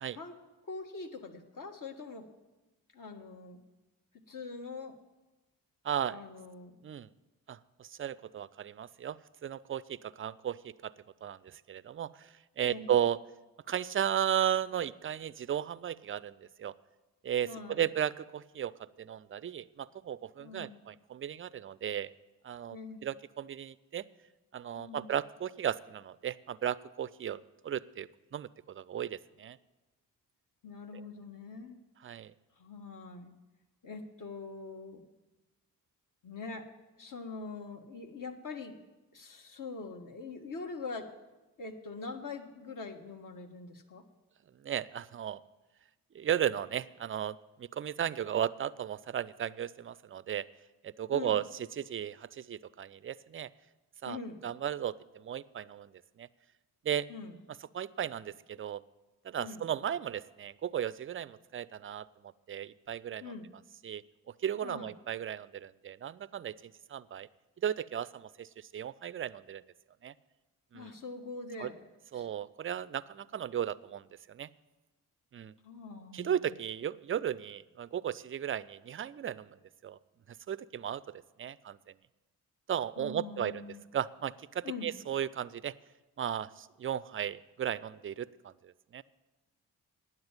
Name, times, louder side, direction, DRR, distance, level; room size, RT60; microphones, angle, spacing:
voice 1, 0.6-2.3 2.9-3.6 4.3-5.0 6.1-6.7 12.6-12.9 17.4-17.8 20.4-20.8 22.7-23.0 24.7-25.1 30.6-31.8 32.6-33.3 33.8-35.0 36.2-36.7 37.0-38.8 39.1-41.1 41.6-44.0 51.1-51.4 54.1-54.4 57.1-57.4 59.4-59.6 63.2-63.5 64.6-64.9 70.7-71.8 72.1-72.3 75.6-76.4 83.0-83.8 84.6-84.9, left 4 dB, 45° left, 5 dB, 1.5 m, -43 dB
voice 2, 5.8-6.2 6.8-7.1 7.5-10.9 11.2-13.2 13.7-16.7 17.2-22.1 22.4-22.8 23.0-24.0 24.5-27.4 27.6-29.6 30.9-31.0 32.0-32.3 44.6-45.4 46.1-50.5 50.8-53.5 54.0-55.9 56.2-56.3 56.8-57.1 57.7-58.8 59.2-62.1 62.5-63.3 63.8-64.0 64.4-67.3 67.6-69.6 70.0-70.1 70.7-70.9 71.6-71.7 72.1-74.5 75.3-75.5 76.1-79.6 79.8-80.0 80.5-81.8 82.7-83.6 83.9-85.7 86.2-89.0, right 9 dB, 30° right, 19 dB, 0.5 m, -35 dB
9.5 x 7.6 x 8.9 m, 1.1 s
hypercardioid pair, 40°, 43 cm